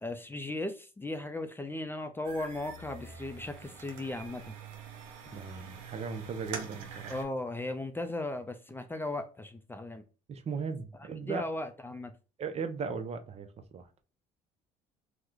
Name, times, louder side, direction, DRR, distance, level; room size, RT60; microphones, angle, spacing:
voice 1, 0.0-4.5 7.1-10.0 11.3-12.1, left 2 dB, 15° left, 0.4 m, -37 dB
sound 1, 2.2-7.2, right 5 dB, 90° right, 0.6 m, -45 dB
voice 2, 5.3-7.1 10.3-11.4 12.4-13.5 13.7-13.9, right 5 dB, 40° right, 0.6 m, -37 dB
2.9 x 2.1 x 3.6 m
supercardioid pair, 75°, 17 cm